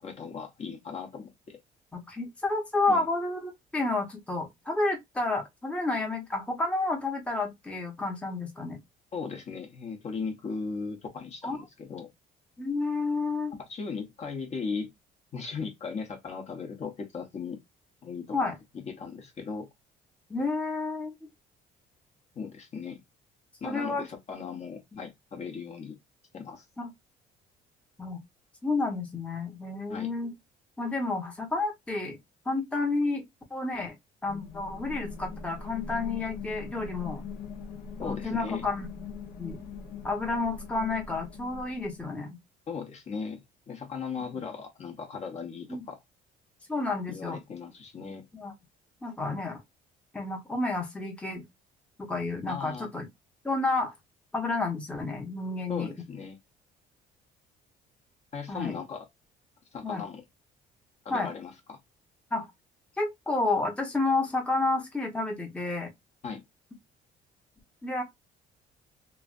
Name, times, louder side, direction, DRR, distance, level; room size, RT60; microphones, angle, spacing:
voice 1, 0.0-1.6 2.9-3.0 9.1-12.1 13.7-14.9 15.3-17.6 18.0-18.4 18.7-19.7 22.4-23.0 23.6-26.0 26.3-26.6 29.9-30.1 38.0-38.6 42.7-43.4 43.7-46.0 47.1-48.2 52.5-52.9 55.7-56.4 58.3-59.1 59.7-60.2 61.0-61.8 66.2-66.4, left 5 dB, 40° left, 0.9 m, -37 dB
voice 2, 1.9-8.8 11.4-11.6 12.6-13.5 18.3-18.5 20.3-21.1 23.6-24.1 26.8-26.9 28.0-28.2 28.6-30.3 30.8-32.2 32.5-33.2 33.5-33.9 34.2-37.3 38.0-38.9 39.4-39.6 40.0-42.4 45.7-45.8 46.7-47.4 48.3-48.5 49.0-49.6 50.1-51.5 52.0-53.1 53.4-53.9 54.3-55.9 58.5-58.8 59.8-60.0 61.1-61.3 62.3-62.5 63.0-65.9 67.8-68.0, left 3 dB, 5° left, 0.8 m, -30 dB
sound 1, 34.3-42.1, left 4 dB, 75° left, 0.9 m, -41 dB
3.1 x 2.5 x 2.3 m
cardioid pair, 110°, 17 cm